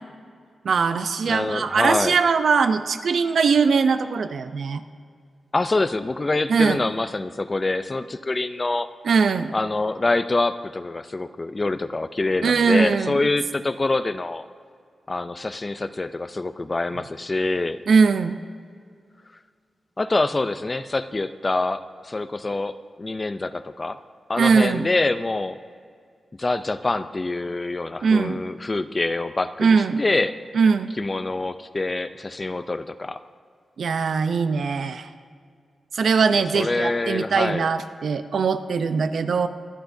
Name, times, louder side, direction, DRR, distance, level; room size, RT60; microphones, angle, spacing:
voice 1, 0.6-4.8 6.5-6.8 9.0-9.5 12.4-13.2 17.9-18.4 24.4-24.9 28.0-28.4 29.6-30.0 30.5-30.9 33.8-35.1 35.9-39.5, right 5 dB, 65° right, 10 dB, 0.6 m, -21 dB
voice 2, 1.3-2.2 5.5-8.9 9.5-14.5 15.1-17.8 20.0-24.0 24.3-25.6 26.4-30.3 31.0-33.2 36.3-37.7, left 2 dB, 25° left, 12 dB, 0.4 m, -25 dB
24.5 x 10.0 x 2.7 m, 2.1 s
wide cardioid pair, 160°, 0 cm